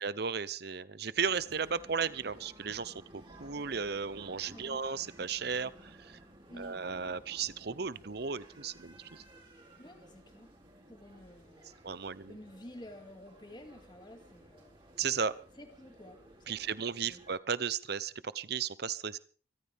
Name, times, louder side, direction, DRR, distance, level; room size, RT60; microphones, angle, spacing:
voice 1, 0.0-5.7 6.0-6.2 6.6-9.2 11.8-12.4 15.0-15.4 16.5-19.2, right 6 dB, 55° right, 16 dB, 0.8 m, -35 dB
sound 1, 1.2-17.3, right 1 dB, 25° right, 4.2 m, -56 dB
voice 2, 4.5-4.8 6.5-6.8 9.8-10.5 10.9-14.8 15.6-16.2 16.5-16.7 17.0-17.2, left 1 dB, 25° left, 4 dB, 2.4 m, -51 dB
24.5 x 14.0 x 3.6 m, 0.42 s
head